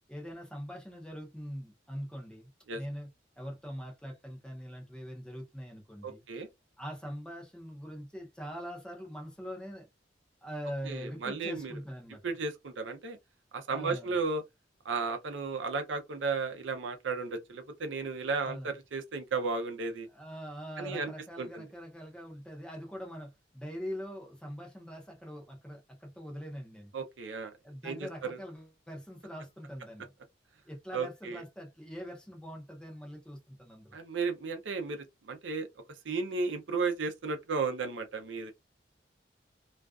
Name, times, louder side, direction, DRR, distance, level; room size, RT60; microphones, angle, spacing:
voice 1, 0.1-3.1 3.4-6.4 6.8-9.9 10.4-12.2 13.7-14.1 18.4-18.7 20.1-26.9 27.6-30.1 30.7-34.0, equal, 5° left, 0.6 m, -43 dB
voice 2, 6.0-6.5 10.8-11.7 12.2-13.2 13.5-14.4 14.8-20.1 20.8-21.1 21.4-21.6 26.9-27.5 27.8-28.0 28.3-28.4 30.9-31.4 33.9-35.7 36.1-38.5, right 4 dB, 90° right, 0.5 m, -34 dB
2.4 x 2.2 x 2.3 m
head